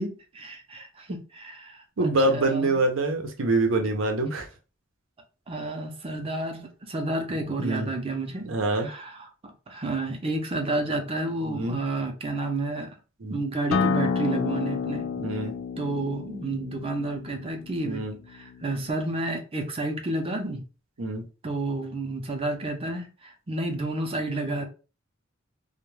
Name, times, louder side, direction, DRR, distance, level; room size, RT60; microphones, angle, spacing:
voice 1, 0.0-2.8 5.5-8.5 8.7-13.0 13.3-15.0 15.8-18.0 18.3-20.6 21.4-24.7, right 2 dB, 30° right, 4 dB, 0.5 m, -31 dB
voice 2, 2.0-4.5 7.6-7.9 8.4-8.9 11.5-11.8 13.2-13.4 15.2-15.5 17.8-18.1 21.0-21.2, right 2 dB, 90° right, 4 dB, 0.7 m, -25 dB
Acoustic guitar, 13.7-18.9, left 5 dB, 85° left, 0.4 m, -30 dB
2.2 x 2.2 x 3.1 m, 0.34 s
head